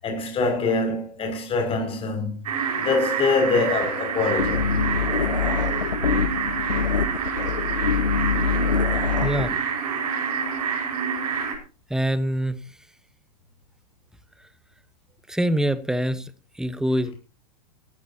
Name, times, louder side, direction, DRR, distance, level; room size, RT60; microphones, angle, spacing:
voice 1, 0.0-2.3 2.8-4.7, left 3 dB, 25° left, 6.3 m, -24 dB
sound 1, 2.4-11.5, right 6 dB, 65° right, 5.4 m, -27 dB
sound 2, 4.4-9.5, left 6 dB, 85° left, 1.3 m, -24 dB
voice 2, 9.2-9.6 11.9-12.6 15.3-16.3 16.6-17.2, right 1 dB, 5° right, 1.2 m, -24 dB
18.0 x 15.0 x 2.9 m
hypercardioid pair, 100°, 21 cm